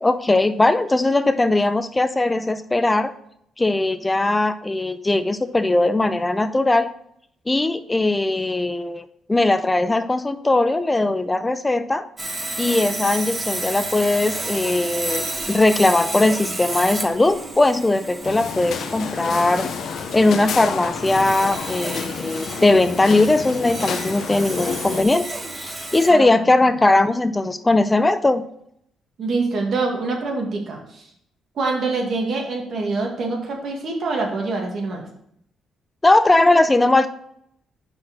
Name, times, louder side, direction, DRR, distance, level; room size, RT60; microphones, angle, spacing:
voice 1, 0.0-3.1 3.6-6.9 7.5-12.0 12.6-19.7 20.1-25.3 25.6-28.4 36.0-37.1, left 2 dB, 15° left, 11 dB, 0.4 m, -19 dB
Sawing, 12.2-26.1, right 2 dB, 20° right, 1.4 m, -31 dB
sound 1, 18.2-25.0, left 7 dB, 65° left, 0.7 m, -30 dB
voice 2, 26.1-26.4 29.2-31.1 31.6-35.0, right 3 dB, 60° right, 1 dB, 2.0 m, -25 dB
5.9 x 4.8 x 6.1 m, 0.73 s
cardioid pair, 90°, 0 cm